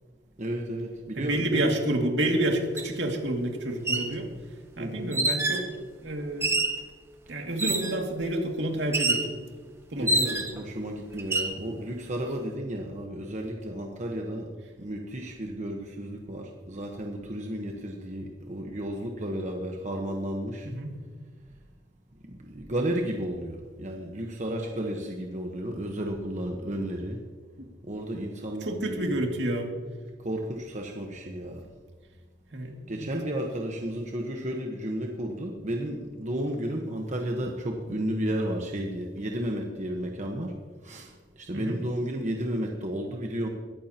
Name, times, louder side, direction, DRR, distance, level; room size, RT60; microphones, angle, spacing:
voice 1, 0.4-1.7 4.8-5.1 10.0-14.5 14.8-20.7 22.3-27.2 27.8-29.1 30.2-31.7 32.9-40.5 40.8-43.5, right 1 dB, 40° right, 1 dB, 1.2 m, -33 dB
voice 2, 1.2-4.3 4.8-5.7 6.0-6.5 7.3-9.3 9.9-10.3 20.6-21.0 27.6-27.7 28.6-29.7 32.5-33.1 41.5-41.8, right 1 dB, 70° right, 1 dB, 2.3 m, -29 dB
sound 1, 2.8-2.9 3.7-4.1 5.1-5.7 6.4-6.8 7.6-8.0 8.9-9.3 10.1-10.6 11.2-11.6, right 2 dB, 15° right, 1.1 m, -26 dB
21.0 x 14.0 x 2.9 m, 1.5 s
head